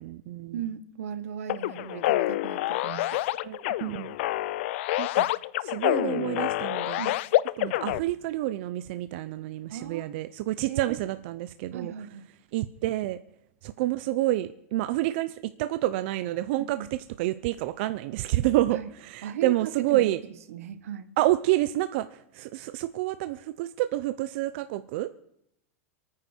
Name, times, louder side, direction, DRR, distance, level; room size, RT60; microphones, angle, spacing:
voice 1, 0.0-0.6 3.4-4.2 5.0-5.3 5.6-7.0 7.6-11.9 12.5-13.2 13.6-16.8 17.2-20.2 21.2-25.1, right 15 dB, 50° right, 11 dB, 0.8 m, -28 dB
voice 2, 0.5-3.2 5.9-6.1 7.0-7.1 9.7-10.1 10.7-11.0 11.7-12.2 16.5-16.9 18.7-18.9 19.2-20.1 20.5-21.1, right 9 dB, 80° right, 12 dB, 1.6 m, -37 dB
sound 1, 1.5-8.0, left 16 dB, 55° left, 0.5 m, -27 dB
27.5 x 9.7 x 4.6 m, 0.77 s
supercardioid pair, 155°, 8 cm